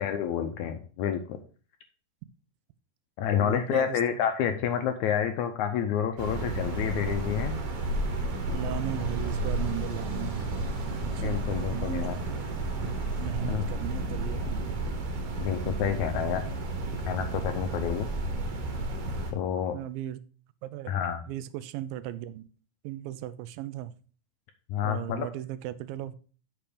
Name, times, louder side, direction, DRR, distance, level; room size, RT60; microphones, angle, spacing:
voice 1, 0.0-1.4 3.2-7.6 11.2-12.2 13.5-13.6 15.4-16.4 17.1-18.1 19.3-19.8 20.9-21.2 24.7-25.3, left 9 dB, 80° left, 7 dB, 1.8 m, -29 dB
voice 2, 3.4-4.2 8.5-10.5 11.2-12.2 13.2-15.1 19.7-20.2 20.6-20.9 21.3-22.5 22.8-23.9 24.8-26.2, right 13 dB, 85° right, 15 dB, 2.3 m, -37 dB
sound 1, 6.2-19.3, right 2 dB, 70° right, 2.8 m, -32 dB
sound 2, 6.6-13.3, right 3 dB, 45° right, 2.7 m, -47 dB
7.1 x 5.9 x 5.1 m, 0.39 s
omnidirectional pair, 4.0 m